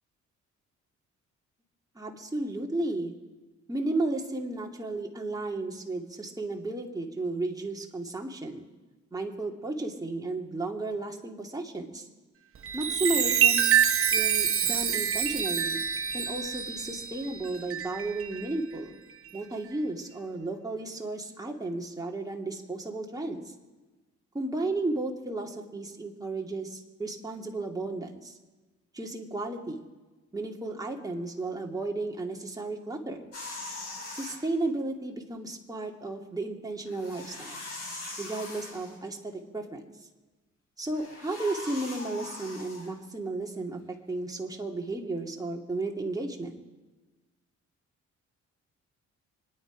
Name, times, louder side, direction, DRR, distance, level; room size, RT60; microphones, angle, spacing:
voice 1, 2.0-3.1 3.7-8.6 9.1-12.0 12.7-13.8 14.1-15.8 16.1-19.0 19.3-23.4 24.3-28.3 28.9-29.9 30.3-33.3 34.1-37.6 38.2-39.9 40.8-43.8 44.1-46.6, right 2 dB, 10° right, 0 dB, 2.3 m, -33 dB
Chime, 12.6-18.5 19.1-19.4, right 8 dB, 45° right, 1.0 m, -26 dB
sound 1, 33.3-34.4 36.8-39.0 40.9-42.9, left 2 dB, 55° left, 6.2 m, -41 dB
26.0 x 10.0 x 5.0 m, 1.2 s
cardioid pair, 90°, 30 cm